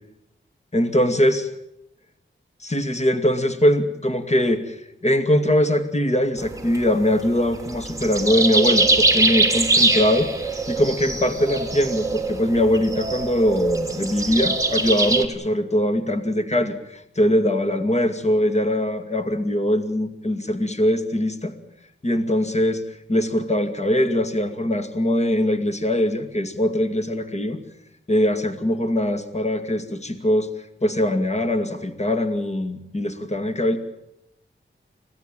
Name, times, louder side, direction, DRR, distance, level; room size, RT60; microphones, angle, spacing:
voice 1, 0.7-1.5 2.6-21.5 22.0-22.8 23.1-27.6 28.1-30.5 30.8-33.8, left 1 dB, 35° left, 8 dB, 2.4 m, -22 dB
sound 1, 6.4-15.3, right 2 dB, 15° right, 2.8 m, -22 dB
26.5 x 16.5 x 9.2 m, 0.83 s
wide cardioid pair, 90°, 20 cm